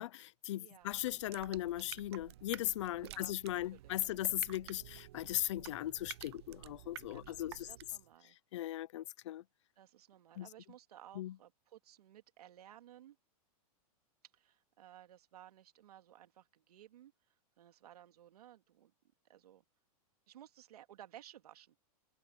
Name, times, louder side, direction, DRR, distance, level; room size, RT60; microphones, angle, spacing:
voice 1, 0.0-7.7 8.5-9.4 10.4-10.5 11.2-11.3, left 14 dB, 50° left, 0.6 m, -38 dB
voice 2, 0.6-1.0 3.1-3.3 3.7-3.9 7.1-8.4 9.8-13.2 14.3-18.9 19.2-19.6 20.3-21.8, right 12 dB, 85° right, 2.7 m, -58 dB
sound 1, 0.8-8.1, right 15 dB, 45° right, 0.4 m, -52 dB
supercardioid pair, 175°, 19 cm